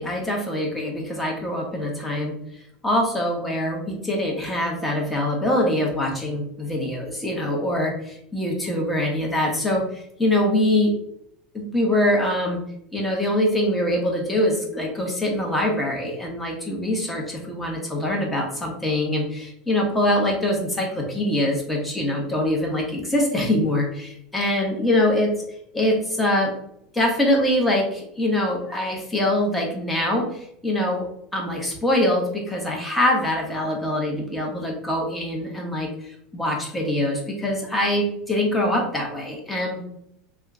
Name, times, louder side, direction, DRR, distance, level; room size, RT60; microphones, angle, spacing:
voice 1, 0.0-2.4 2.8-11.0 11.5-12.6 12.9-25.4 25.7-26.6 26.9-39.8, left 1 dB, 10° left, -1 dB, 1.1 m, -24 dB
2.8 x 2.3 x 3.7 m, 0.74 s
hypercardioid pair, 95°, 0 cm